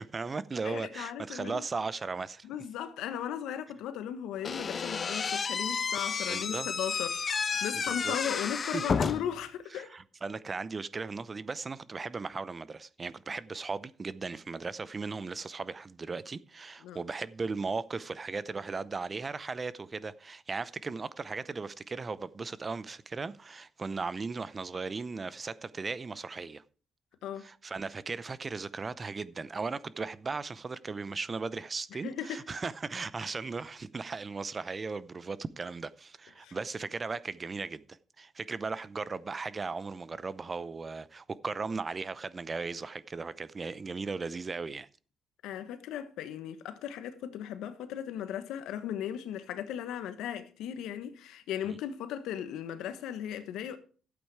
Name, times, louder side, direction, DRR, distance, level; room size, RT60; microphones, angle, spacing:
voice 1, 0.0-2.5 6.3-6.7 7.9-8.2 8.7-8.8 9.8-26.6 27.4-44.9 51.7-51.8, right 4 dB, 30° right, 0.6 m, -37 dB
voice 2, 0.6-1.6 2.4-9.9 16.8-17.0 27.2-27.5 31.9-32.4 36.4-36.6 45.4-53.8, left 10 dB, 90° left, 1.2 m, -37 dB
Slam / Squeak, 4.4-9.4, left 5 dB, 40° left, 0.6 m, -31 dB
12.5 x 8.5 x 4.8 m
cardioid pair, 90°, 0 cm